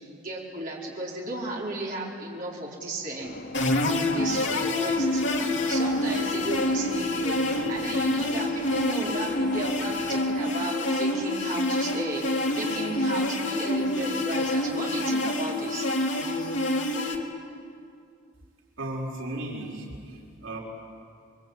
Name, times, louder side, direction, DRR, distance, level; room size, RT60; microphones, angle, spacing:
voice 1, 0.0-3.4 4.1-5.2 5.6-15.9, right 2 dB, 45° right, -4 dB, 4.9 m, -35 dB
sound 1, 3.2-10.3, left 2 dB, 90° left, 2.4 m, -42 dB
sound 2, 3.5-17.2, left 1 dB, 65° left, 3.1 m, -27 dB
voice 2, 18.8-20.6, right 1 dB, 90° right, -2 dB, 5.3 m, -35 dB
29.0 x 23.0 x 9.0 m, 2.3 s
head